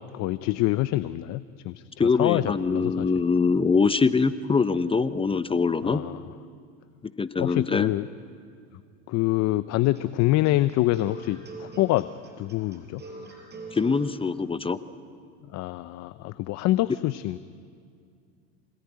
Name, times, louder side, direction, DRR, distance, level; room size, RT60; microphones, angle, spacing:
voice 1, 0.1-3.1 5.8-6.2 7.4-8.1 9.1-12.1 12.4-13.0 15.5-17.4, left 16 dB, 50° left, 14 dB, 0.7 m, -26 dB
voice 2, 2.0-6.0 7.2-7.9 13.7-14.8, left 4 dB, 15° left, 12 dB, 0.8 m, -23 dB
sound 1, 9.8-14.1, right 3 dB, 30° right, 6.7 m, -42 dB
26.5 x 19.0 x 9.8 m, 2.3 s
supercardioid pair, 100°, 34 cm